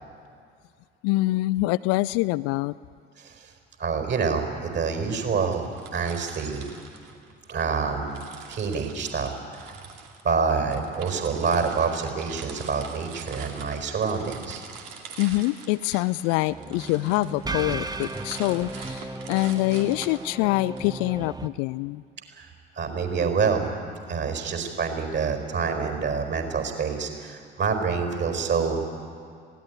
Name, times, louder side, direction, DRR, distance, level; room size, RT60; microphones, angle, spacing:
voice 1, 1.0-2.7 15.2-22.0, left 19 dB, 55° left, 18 dB, 0.5 m, -25 dB
voice 2, 3.2-3.5 3.8-6.7 7.5-9.8 10.2-14.6 22.3-22.5 22.7-23.6 24.1-28.8, right 5 dB, 40° right, 5 dB, 4.6 m, -27 dB
sound 1, 5.4-7.7 8.1-20.8, right 6 dB, 65° right, 2.5 m, -44 dB
sound 2, 16.5-21.5, right 3 dB, 15° right, 1.2 m, -35 dB
20.5 x 17.0 x 9.7 m, 2.2 s
figure-of-eight pair, 55°, 30 cm